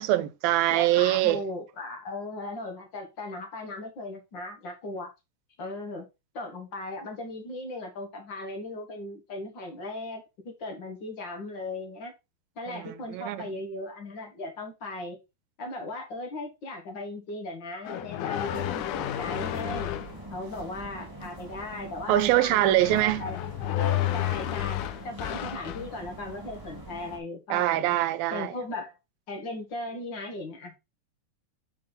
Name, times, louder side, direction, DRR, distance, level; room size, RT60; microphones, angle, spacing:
voice 1, 0.0-1.4 12.7-13.5 22.1-23.3 27.5-28.5, right 14 dB, 85° right, 2.4 m, -24 dB
voice 2, 0.7-5.1 5.6-6.1 6.3-12.1 12.6-15.2 15.6-19.9 20.3-23.4 23.8-24.8 25.0-28.0 28.3-28.9 29.3-30.8, left 2 dB, 50° left, 1.4 m, -37 dB
sound 1, 17.9-20.2 22.8-25.9, left 12 dB, 90° left, 1.8 m, -31 dB
sound 2, 18.4-27.2, right 1 dB, 10° right, 0.9 m, -43 dB
6.7 x 5.2 x 3.9 m
omnidirectional pair, 4.2 m